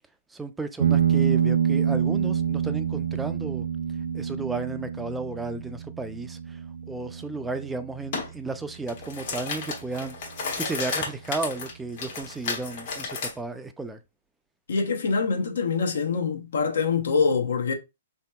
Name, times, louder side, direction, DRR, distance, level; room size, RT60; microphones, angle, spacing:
voice 1, 0.3-3.7 4.1-6.6 6.9-10.2 10.6-14.0, right 3 dB, 10° right, 0.3 m, -33 dB
sound 1, 0.8-9.8, right 8 dB, 80° right, 0.4 m, -27 dB
sound 2, 8.1-8.3 8.7-13.3, left 4 dB, 50° left, 1.0 m, -32 dB
voice 2, 14.7-17.7, left 5 dB, 75° left, 0.7 m, -24 dB
3.3 x 2.8 x 2.2 m
hypercardioid pair, 140°, 0 cm